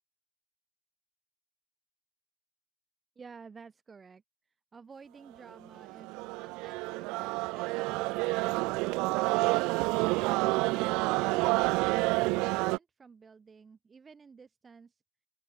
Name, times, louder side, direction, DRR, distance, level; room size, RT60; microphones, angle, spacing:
voice 1, 3.2-9.5 10.5-15.0, right 5 dB, 30° right, 5.7 m, -53 dB
sound 1, 5.5-12.8, right 24 dB, 70° right, 1.1 m, -29 dB
open air
hypercardioid pair, 65°, 0 cm